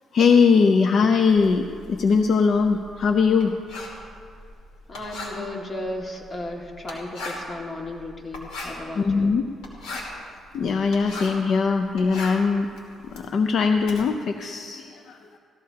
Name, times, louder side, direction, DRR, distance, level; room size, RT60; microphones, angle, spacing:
voice 1, 0.1-3.5 8.9-9.4 10.5-12.7 13.0-15.4, left 5 dB, 60° left, 6 dB, 0.5 m, -21 dB
Writing, 1.3-11.5 11.8-14.0, left 2 dB, 85° left, 2.8 m, -38 dB
voice 2, 4.9-9.3, left 1 dB, 35° left, 0 dB, 2.0 m, -35 dB
17.0 x 14.0 x 2.8 m, 2.3 s
cardioid pair, 90°, 0 cm